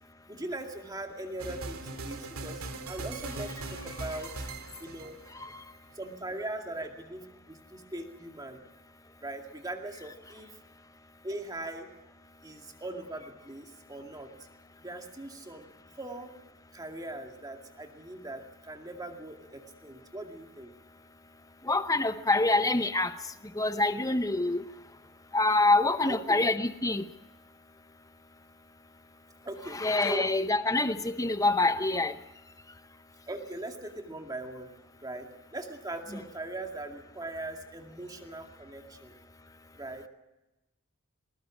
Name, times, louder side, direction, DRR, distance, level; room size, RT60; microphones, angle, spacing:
voice 1, 0.3-4.3 4.8-5.2 5.9-8.6 9.2-10.6 11.2-11.9 12.4-14.3 14.8-15.7 16.0-16.3 16.7-20.7 26.1-26.4 29.4-30.3 33.3-34.7 35.0-35.3 35.5-39.2 39.8-40.1, right 2 dB, 20° right, 2.2 m, -40 dB
sound 1, 1.4-5.6, right 2 dB, 80° right, 2.3 m, -40 dB
voice 2, 21.6-23.2 23.5-24.6 25.3-27.1 29.6-32.2 36.1-36.2, left 2 dB, 15° left, 0.8 m, -26 dB
19.5 x 19.5 x 7.1 m
head